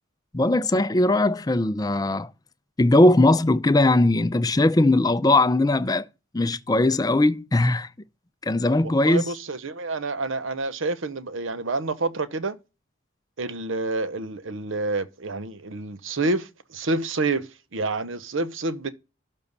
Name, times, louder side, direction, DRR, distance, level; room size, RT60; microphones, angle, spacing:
voice 1, 0.3-2.3 2.8-6.1 6.3-7.9 8.4-9.3, left 2 dB, 20° left, 0.4 m, -19 dB
voice 2, 8.8-12.6 13.4-18.9, right 3 dB, 70° right, 0.9 m, -28 dB
12.5 x 5.4 x 4.0 m
head